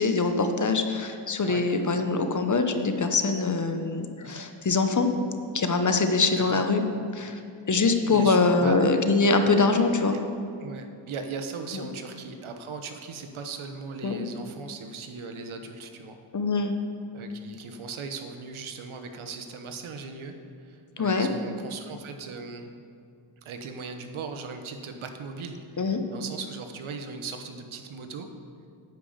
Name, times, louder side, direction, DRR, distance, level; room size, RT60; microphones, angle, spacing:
voice 1, 0.0-5.1 5.5-6.8 7.1-7.4 7.7-10.1 11.7-11.9 14.0-14.2 16.3-16.7 21.0-21.3 25.8-26.0, left 3 dB, 35° left, 7 dB, 1.0 m, -23 dB
voice 2, 6.3-6.6 8.0-8.8 10.1-10.2 10.6-16.2 17.1-20.3 20.6-22.7 23.4-28.3, right 5 dB, 75° right, 6 dB, 1.1 m, -38 dB
10.5 x 5.2 x 7.1 m, 2.4 s
cardioid pair, 65°, 49 cm